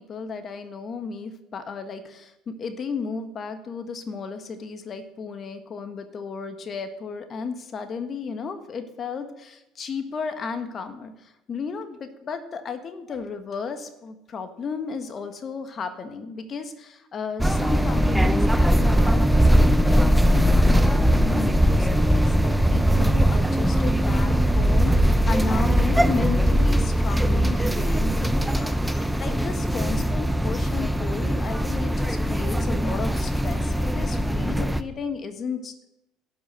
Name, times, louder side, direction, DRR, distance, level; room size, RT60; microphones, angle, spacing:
voice 1, 0.0-35.9, left 5 dB, 40° left, 8 dB, 1.5 m, -34 dB
sound 1, 17.4-34.8, equal, 5° right, 0.7 m, -20 dB
12.0 x 7.3 x 6.4 m, 0.90 s
hypercardioid pair, 70°, 0 cm